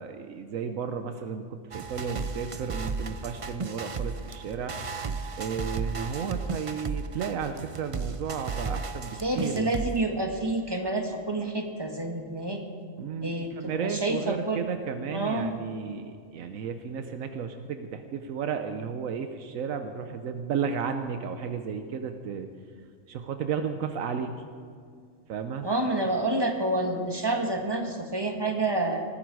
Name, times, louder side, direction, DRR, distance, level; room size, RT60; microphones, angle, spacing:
voice 1, 0.0-4.7 5.4-9.8 13.0-22.5 23.1-24.4 25.3-25.7, right 6 dB, 85° right, 7 dB, 1.2 m, -33 dB
sound 1, 1.7-10.0, right 4 dB, 40° right, 0.4 m, -34 dB
voice 2, 9.2-12.6 13.2-14.6 15.1-15.5 25.6-29.0, right 2 dB, 20° right, 3 dB, 1.4 m, -28 dB
19.0 x 14.0 x 4.7 m, 2.2 s
omnidirectional pair, 1.4 m